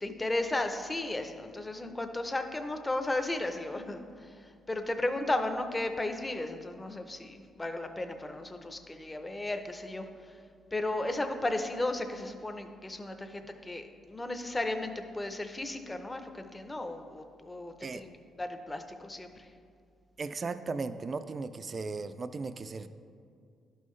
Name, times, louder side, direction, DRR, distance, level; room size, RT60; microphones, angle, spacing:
voice 1, 0.0-4.3 4.7-10.1 10.7-18.1 18.4-19.5, left 2 dB, 20° left, 7 dB, 0.6 m, -34 dB
voice 2, 20.2-22.9, right 4 dB, 35° right, 11 dB, 0.3 m, -36 dB
11.5 x 5.5 x 3.2 m, 2.3 s
cardioid pair, 90°, 0 cm